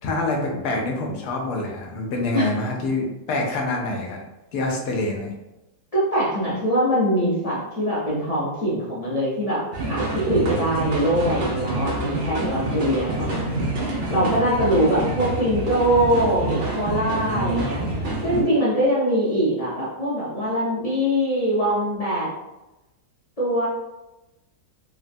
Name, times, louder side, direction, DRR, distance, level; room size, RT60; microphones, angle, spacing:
voice 1, 0.0-4.2 4.5-5.3 17.2-17.7, left 2 dB, 85° left, 1 dB, 1.2 m, -26 dB
voice 2, 5.9-13.6 14.1-17.8 18.2-22.3 23.4-23.7, equal, 45° left, -8 dB, 0.5 m, -22 dB
sound 1, 9.7-18.4, right 2 dB, 85° right, 0.4 m, -27 dB
3.3 x 2.1 x 2.5 m, 0.98 s
omnidirectional pair, 1.7 m